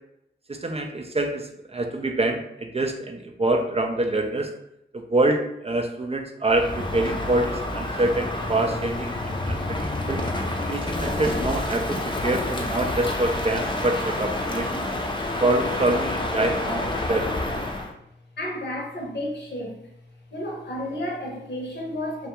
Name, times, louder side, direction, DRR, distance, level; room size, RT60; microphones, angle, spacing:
voice 1, 0.5-4.5 4.9-10.2 10.7-14.8 15.4-17.4, right 2 dB, 30° right, 3 dB, 0.4 m, -26 dB
Crow, 6.5-17.9, left 1 dB, 25° left, 0.5 m, -28 dB
voice 2, 18.4-19.9 20.3-22.3, left 1 dB, 60° left, -1 dB, 0.8 m, -32 dB
2.4 x 2.3 x 2.8 m, 0.80 s
cardioid pair, 40°, 21 cm